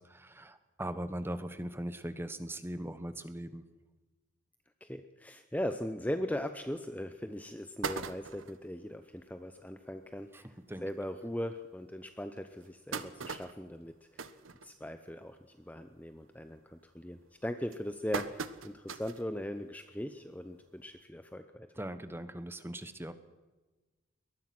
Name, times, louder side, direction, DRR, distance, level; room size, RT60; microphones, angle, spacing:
voice 1, 0.0-3.6 10.3-10.4 10.7-10.8 21.8-23.1, right 1 dB, 10° right, 11 dB, 1.2 m, -40 dB
voice 2, 4.8-14.3 14.6-21.7, left 1 dB, 10° left, 8 dB, 0.7 m, -39 dB
sound 1, 6.7-6.8 7.3-7.4 7.6-8.7 9.2-9.3 9.6-9.7 10.0-10.2 10.9-11.0 11.5-11.6 12.4-15.2 15.6-15.9 16.2-16.6 17.3-19.3 19.7-19.8 21.0-21.1, right 4 dB, 85° right, 1.2 m, -40 dB
22.5 x 19.5 x 6.1 m, 1.2 s
head